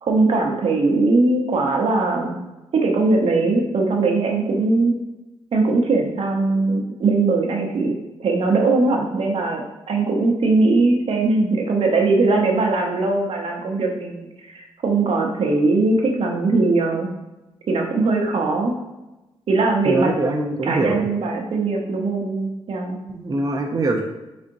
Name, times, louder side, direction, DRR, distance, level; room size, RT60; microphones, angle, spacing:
voice 1, 0.0-2.4 2.7-4.9 5.5-7.9 8.2-9.6 9.9-17.1 17.7-18.8 19.5-20.1 20.6-23.0, right 3 dB, 60° right, 1 dB, 0.8 m, -20 dB
voice 2, 19.8-21.1 23.1-24.0, right 2 dB, 35° right, 2 dB, 0.6 m, -23 dB
4.2 x 3.8 x 2.6 m, 1.0 s
cardioid pair, 65°, 11 cm